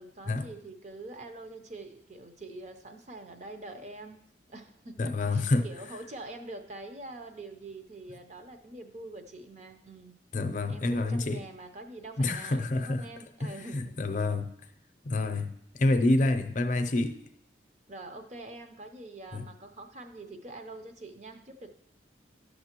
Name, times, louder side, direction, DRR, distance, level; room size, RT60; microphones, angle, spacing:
voice 1, 0.0-4.2 4.5-10.1 10.7-14.1 17.9-21.7, right 2 dB, 40° right, 0.7 m, -45 dB
voice 2, 5.0-5.7 10.3-11.4 12.2-13.1 13.4-14.5 15.0-17.2 19.3-19.4, left 2 dB, 45° left, 0.5 m, -28 dB
11.5 x 6.8 x 2.9 m
head